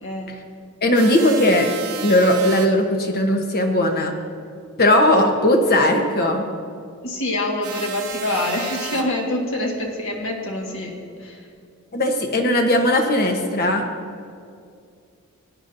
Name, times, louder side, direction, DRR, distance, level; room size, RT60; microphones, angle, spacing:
voice 1, 0.0-0.3 7.0-11.4, left 1 dB, 60° left, 0 dB, 1.7 m, -26 dB
voice 2, 0.8-1.7 2.0-4.1 4.8-6.4 11.9-13.8, left 1 dB, 45° left, 3 dB, 1.1 m, -18 dB
sound 1, 0.9-2.7 7.6-9.0, right 9 dB, 70° right, 0.8 m, -33 dB
19.0 x 9.6 x 2.7 m, 2.3 s
head